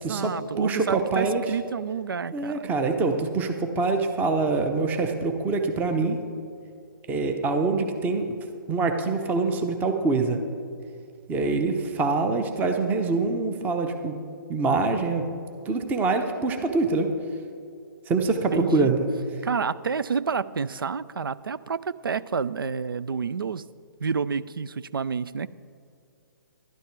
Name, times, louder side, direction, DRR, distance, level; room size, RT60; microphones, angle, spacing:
voice 1, 0.0-2.7 18.5-18.9 19.4-23.6 24.0-25.5, right 6 dB, 80° right, 16 dB, 0.4 m, -29 dB
voice 2, 0.6-1.4 2.3-6.2 7.1-8.3 8.7-10.4 11.3-14.2 14.5-15.2 15.7-17.1 18.1-19.1, right 3 dB, 15° right, 5 dB, 0.8 m, -25 dB
12.0 x 12.0 x 4.6 m, 2.5 s
figure-of-eight pair, 135°, 12 cm